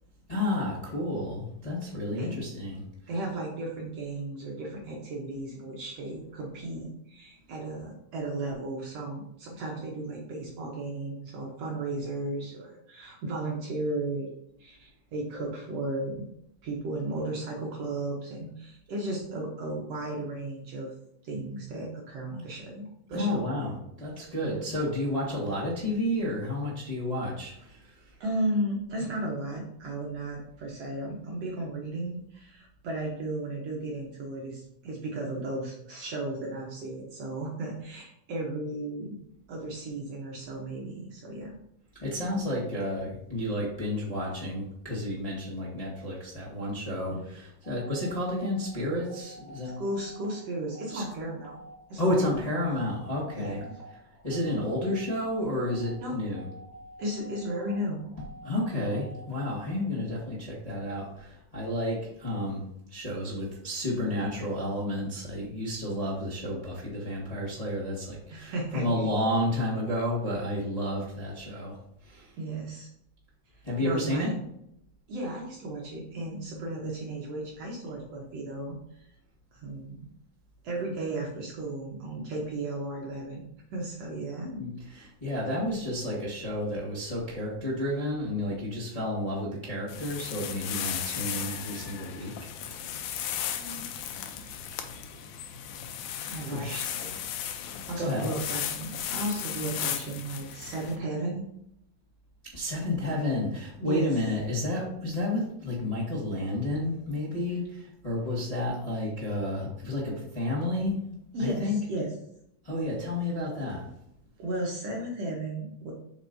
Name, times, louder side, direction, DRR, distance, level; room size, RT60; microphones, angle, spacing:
voice 1, 0.3-2.8 23.1-28.0 42.0-49.7 50.9-51.0 52.0-53.6 54.2-56.5 58.4-62.6 62.9-71.8 72.0-72.3 73.6-74.3 84.4-92.3 96.4-96.8 98.0-98.3 102.5-111.0 111.4-111.8 112.6-113.8, left 1 dB, 15° left, -7 dB, 1.3 m, -31 dB
voice 2, 3.1-16.3 16.6-20.9 21.2-23.5 24.4-24.5 28.2-39.2 39.5-41.6 47.1-47.3 49.8-51.6 51.9-52.8 53.4-53.8 56.0-56.1 57.0-58.0 68.3-69.1 72.3-72.9 73.5-74.3 75.1-79.1 79.5-80.1 80.6-83.4 83.7-84.5 93.6-93.8 96.2-97.2 97.9-101.4 103.1-103.2 103.8-104.1 111.3-112.1 114.4-115.9, right 2 dB, 65° right, -1 dB, 1.8 m, -35 dB
sound 1, 47.6-59.7, right 1 dB, 35° right, 1.5 m, -48 dB
sound 2, 89.9-101.0, left 9 dB, 80° left, 2.0 m, -36 dB
7.9 x 5.2 x 2.7 m, 0.77 s
omnidirectional pair, 3.7 m